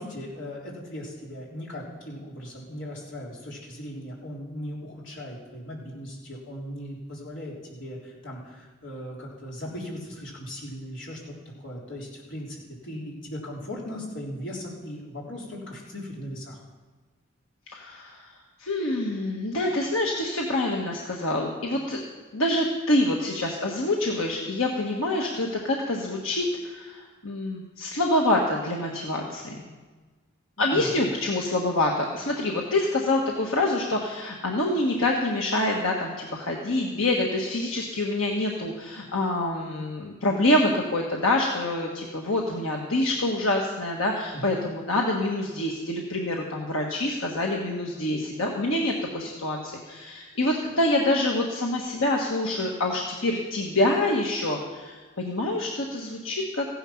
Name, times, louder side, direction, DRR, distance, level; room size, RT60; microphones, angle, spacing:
voice 1, 0.0-16.6 30.6-31.0 44.3-44.5, equal, 65° left, -4 dB, 3.7 m, -38 dB
voice 2, 17.7-18.3 18.6-22.0 22.3-29.7 30.6-56.7, left 1 dB, 90° left, -1 dB, 1.5 m, -26 dB
15.5 x 10.0 x 5.8 m, 1.3 s
head